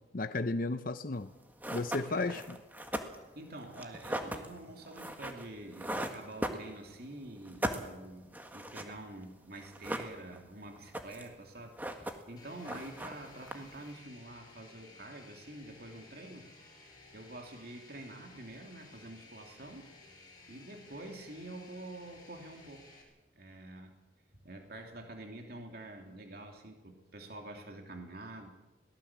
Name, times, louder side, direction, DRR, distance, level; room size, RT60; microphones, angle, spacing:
voice 1, 0.1-1.3 1.7-2.6, left 2 dB, 50° left, 0.7 m, -33 dB
sound 1, 1.2-1.3 1.6-7.1 7.4-9.2 9.6-10.5 10.8-11.4 11.6-12.4 12.6-13.9, right 1 dB, 10° right, 1.6 m, -39 dB
voice 2, 2.0-2.4 3.3-16.5 16.8-19.9 20.5-23.0 23.3-24.0 24.4-28.5, right 1 dB, 55° right, 3.0 m, -47 dB
sound 2, 12.4-23.0, left 3 dB, 25° left, 5.4 m, -57 dB
22.0 x 18.0 x 7.4 m
head